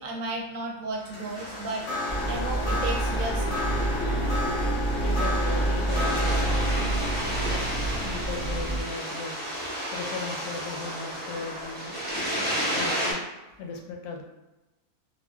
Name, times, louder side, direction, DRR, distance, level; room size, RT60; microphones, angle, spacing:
voice 1, 0.0-3.7, right 2 dB, 70° right, 0 dB, 0.9 m, -34 dB
sound 1, 1.0-10.3, left 2 dB, 60° left, 1.1 m, -34 dB
sound 2, 1.3-13.1, equal, 10° right, 0.7 m, -33 dB
sound 3, 2.1-8.8, right 2 dB, 40° left, 0.7 m, -28 dB
voice 2, 5.0-7.0 7.4-7.7 8.0-9.4 9.9-12.0 12.8-13.3 13.6-14.2, left 4 dB, 90° left, 2 dB, 1.1 m, -37 dB
3.5 x 2.2 x 2.2 m, 1.0 s
omnidirectional pair, 1.6 m